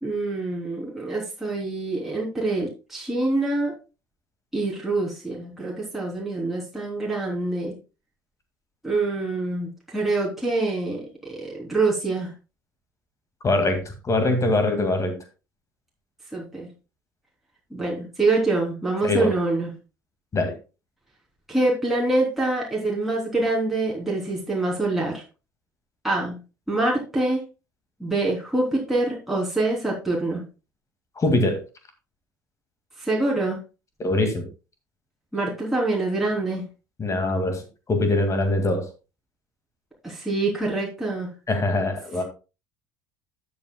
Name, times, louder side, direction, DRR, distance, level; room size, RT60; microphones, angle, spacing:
voice 1, 0.0-3.7 4.5-7.7 8.8-12.3 16.3-16.7 17.7-19.7 21.5-25.2 26.0-26.4 26.7-27.4 28.0-30.4 33.0-33.6 35.3-36.6 40.0-41.3, right 2 dB, 5° right, -4 dB, 3.3 m, -25 dB
voice 2, 13.4-13.8 14.0-15.1 19.0-19.3 20.3-20.6 31.2-31.6 34.0-34.5 37.0-37.6 37.9-38.9 41.5-42.2, left 2 dB, 30° left, 6 dB, 2.2 m, -22 dB
12.5 x 8.6 x 2.3 m, 0.31 s
hypercardioid pair, 70°, 10 cm